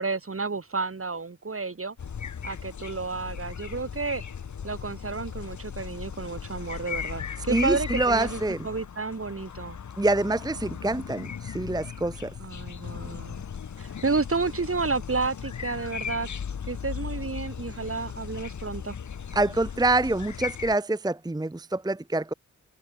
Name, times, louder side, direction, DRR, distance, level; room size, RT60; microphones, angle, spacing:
voice 1, 0.0-1.9 2.4-4.2 4.6-9.8 12.4-13.4 13.8-16.3 16.7-19.0, right 4 dB, 45° right, 1.4 m, -31 dB
sound 1, 2.0-20.7, left 7 dB, 65° left, 0.8 m, -37 dB
voice 2, 7.5-8.7 10.0-12.3 19.3-22.3, right 2 dB, 10° right, 0.7 m, -26 dB
wide cardioid pair, 50°, 31 cm